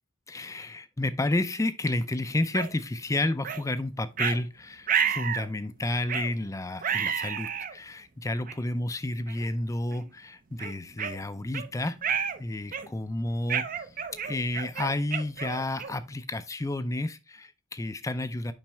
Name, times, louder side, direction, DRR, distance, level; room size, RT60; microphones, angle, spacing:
voice 1, 0.3-13.6 14.2-18.5, left 2 dB, 15° left, 0.4 m, -31 dB
sound 1, 2.5-2.7 3.4-3.6 4.2-4.4 4.9-5.5 6.1-6.3 6.8-7.7 8.5-8.6 9.3-9.5 9.9-10.0 10.6-11.7 12.0-12.4 12.7-13.0 13.5-16.1, right 7 dB, 40° right, 0.6 m, -30 dB
7.4 x 5.3 x 3.4 m
head